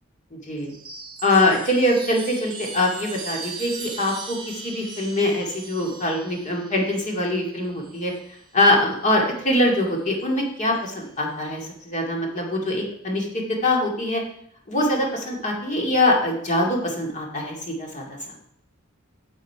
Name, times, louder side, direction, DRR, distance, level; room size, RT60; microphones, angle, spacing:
voice 1, 0.3-0.7 1.2-8.1 8.5-14.2 14.7-18.2, left 1 dB, 35° left, 0 dB, 2.2 m, -23 dB
Chime, 0.6-8.4 9.6-10.3, right 4 dB, 20° right, 2.0 m, -39 dB
10.0 x 7.1 x 4.7 m, 0.68 s
head